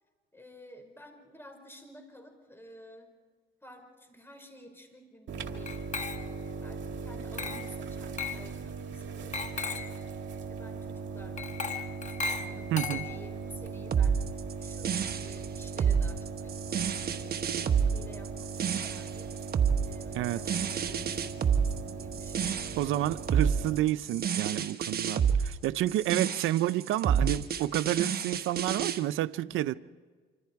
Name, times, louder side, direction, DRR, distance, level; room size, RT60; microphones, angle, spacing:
voice 1, 0.3-3.1 3.6-5.8 6.2-19.4 19.8-22.9 29.3-29.8, equal, 10° left, 5.4 m, -52 dB
sound 1, 5.3-23.8, right 5 dB, 65° right, 2.3 m, -39 dB
Glass, 5.7-6.5 7.4-7.8 8.2-8.5 9.3-10.0 11.4-13.4, left 5 dB, 35° left, 1.4 m, -36 dB
voice 2, 12.7-13.0 20.1-20.4 22.8-29.8, right 14 dB, 85° right, 0.6 m, -29 dB
sound 2, 13.9-29.0, right 7 dB, 50° right, 1.2 m, -29 dB
26.5 x 26.0 x 4.7 m
cardioid pair, 90°, 20 cm